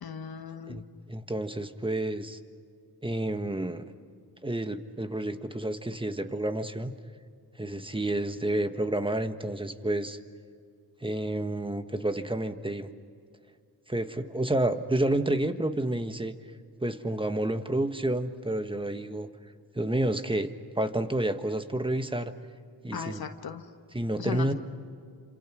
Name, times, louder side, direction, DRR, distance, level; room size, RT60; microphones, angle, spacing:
voice 1, 0.0-0.9 22.9-23.6 24.2-24.5, left 6 dB, 65° left, 6 dB, 1.5 m, -37 dB
voice 2, 0.7-2.4 3.0-3.9 4.4-7.0 7.6-10.2 11.0-12.9 13.9-16.3 16.8-19.3 19.7-20.5 20.7-22.3 22.8-23.2 23.9-24.5, right 1 dB, 15° right, 9 dB, 1.4 m, -30 dB
29.5 x 27.0 x 6.2 m, 2.3 s
cardioid pair, 75°, 40 cm